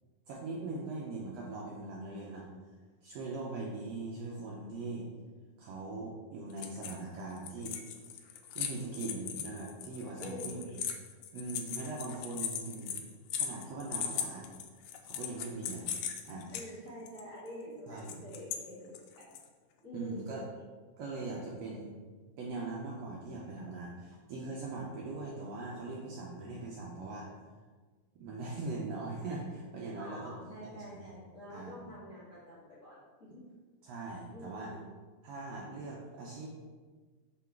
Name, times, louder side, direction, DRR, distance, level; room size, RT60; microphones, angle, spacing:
voice 1, 0.3-2.5 3.0-5.1 5.6-7.8 8.5-10.8 11.3-13.0 13.4-14.5 15.0-15.9 16.2-16.5 17.9-18.2 19.9-20.4 21.0-21.9 22.4-27.3 28.2-30.4 30.6-30.8 31.5-31.7 33.8-34.8 35.2-36.5, right 3 dB, 75° right, -3 dB, 1.6 m, -41 dB
voice 2, 2.0-2.4 10.2-10.9 16.5-19.4 19.8-20.5 30.0-33.4 34.3-34.8, equal, 45° left, -9 dB, 1.0 m, -47 dB
sound 1, 6.5-7.1 7.4-16.6 17.1-17.2 18.0-18.6 18.9-19.4, left 8 dB, 85° left, 2.1 m, -38 dB
6.1 x 3.8 x 4.6 m, 1.4 s
omnidirectional pair, 3.6 m